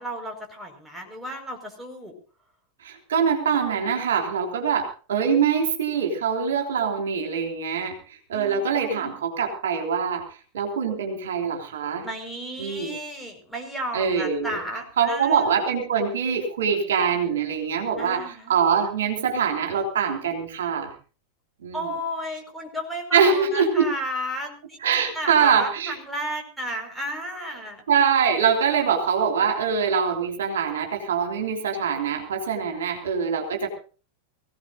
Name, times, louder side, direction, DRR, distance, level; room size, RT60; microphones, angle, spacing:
voice 1, 0.0-2.1 8.3-9.2 12.0-15.4 18.0-18.5 21.7-24.8 25.2-27.8, equal, 5° right, 1 dB, 5.2 m, -33 dB
voice 2, 2.8-10.3 10.5-12.1 12.6-13.0 13.9-14.6 15.0-20.9 21.6-21.9 23.1-23.9 24.8-26.0 27.9-33.7, right 6 dB, 60° right, 5 dB, 3.5 m, -24 dB
23.5 x 16.5 x 2.7 m, 0.38 s
figure-of-eight pair, 90°, 0 cm